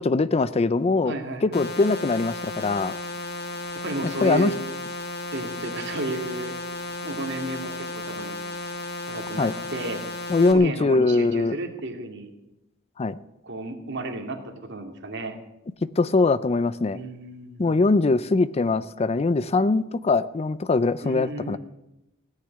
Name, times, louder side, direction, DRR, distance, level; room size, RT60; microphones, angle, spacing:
voice 1, 0.0-1.1 1.4-2.9 4.2-4.5 9.4-9.5 10.3-11.6 13.0-13.2 16.0-17.0 17.6-21.6, left 3 dB, 30° left, 16 dB, 0.4 m, -22 dB
voice 2, 1.0-1.6 3.8-4.7 5.3-6.5 7.0-8.4 9.1-10.0 10.5-12.3 13.4-15.4 16.9-17.9 21.0-21.6, right 2 dB, 60° right, 3 dB, 2.4 m, -33 dB
sound 1, 1.5-10.5, left 2 dB, 50° left, 1.6 m, -34 dB
16.5 x 6.6 x 9.9 m, 0.93 s
head